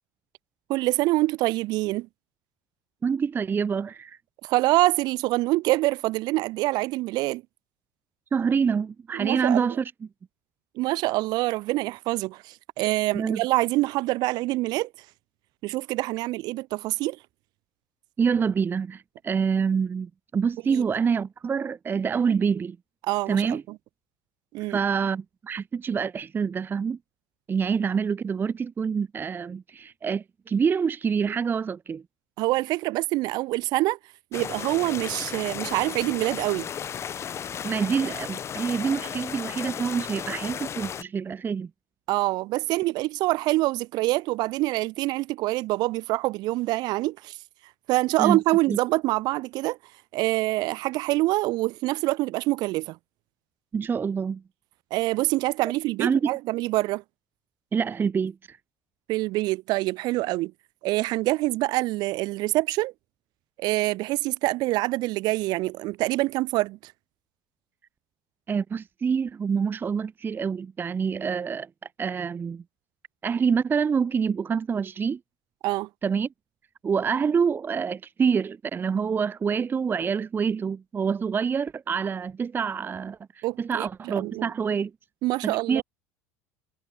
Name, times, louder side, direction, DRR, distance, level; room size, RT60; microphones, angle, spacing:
voice 1, 0.7-2.1 4.4-7.4 9.1-9.8 10.8-14.9 15.6-17.2 20.7-20.8 23.0-23.6 24.5-24.8 32.4-34.0 34.3-36.7 42.1-47.4 47.9-49.8 50.1-53.0 54.9-57.0 59.1-60.5 60.8-62.9 63.6-66.9 75.6-75.9 83.4-84.5 85.2-85.8, right 19 dB, 60° right, 2.1 m, -25 dB
voice 2, 3.0-4.2 8.3-9.9 13.1-13.4 18.2-22.8 23.3-23.6 24.7-27.0 27.5-32.0 37.6-41.7 48.2-48.4 48.7-48.8 53.7-54.4 56.0-56.3 57.7-58.6 68.5-71.7 72.0-72.6 73.2-75.2 76.0-76.3 76.8-84.9 85.4-85.8, right 6 dB, 25° right, 0.8 m, -26 dB
sound 1, 34.3-41.0, left 8 dB, 35° left, 1.0 m, -34 dB
supercardioid pair, 95°, 8 cm